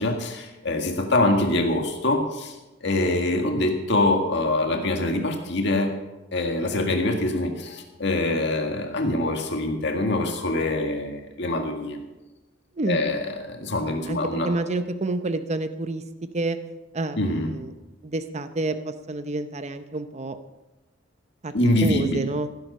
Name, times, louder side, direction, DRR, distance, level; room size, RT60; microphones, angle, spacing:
voice 1, 0.0-2.6 2.8-5.9 6.3-12.0 12.9-13.2 13.5-14.5 17.2-17.5 21.5-22.2, left 2 dB, 65° left, 4 dB, 1.8 m, -24 dB
voice 2, 14.1-16.0 16.3-16.6 16.9-17.7 18.0-20.4 21.4-21.5 21.8-22.5, right 2 dB, 35° right, 9 dB, 0.7 m, -28 dB
16.0 x 10.5 x 5.5 m, 1.0 s
head